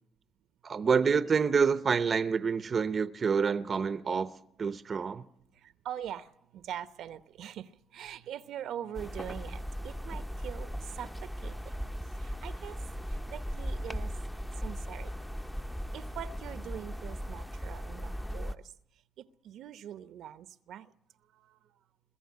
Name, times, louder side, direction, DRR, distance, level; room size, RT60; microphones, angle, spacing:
voice 1, 0.6-4.3 4.6-5.2, right 6 dB, 45° right, 0.7 m, -27 dB
voice 2, 5.6-10.7 10.9-11.1 11.4-11.7 12.2-12.8 13.3-14.1 14.6-15.1 15.9-18.6 19.4-20.9, right 10 dB, 80° right, 0.9 m, -42 dB
sound 1, 8.9-18.6, equal, 10° left, 0.8 m, -38 dB
22.5 x 15.0 x 9.6 m
cardioid pair, 90°, 0 cm